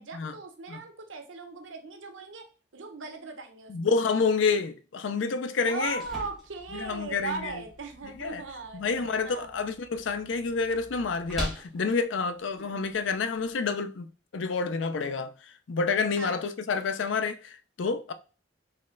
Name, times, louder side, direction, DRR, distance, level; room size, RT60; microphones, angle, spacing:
voice 1, 0.0-2.5 2.7-3.7 5.7-9.5 12.6-12.8 16.2-16.4, right 4 dB, 90° right, 0.9 m, -39 dB
voice 2, 3.7-6.0 6.7-7.6 8.2-8.4 8.7-14.1 14.3-18.1, left 4 dB, 80° left, 0.5 m, -29 dB
sound 1, 5.6-13.5, equal, ahead, 1.3 m, -43 dB
4.2 x 3.2 x 3.7 m
head